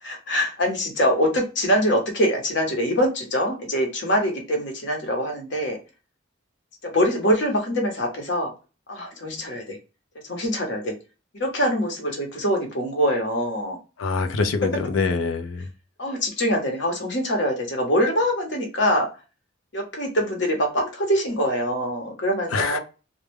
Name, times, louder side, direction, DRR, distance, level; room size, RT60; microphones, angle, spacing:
voice 1, 0.0-5.8 6.8-8.5 8.9-9.8 10.2-10.9 11.3-13.8 16.0-19.1 19.7-22.8, equal, 60° left, 1.0 m, -24 dB
voice 2, 14.0-15.6 22.5-22.8, left 4 dB, 80° left, 0.5 m, -24 dB
2.3 x 2.1 x 3.2 m
head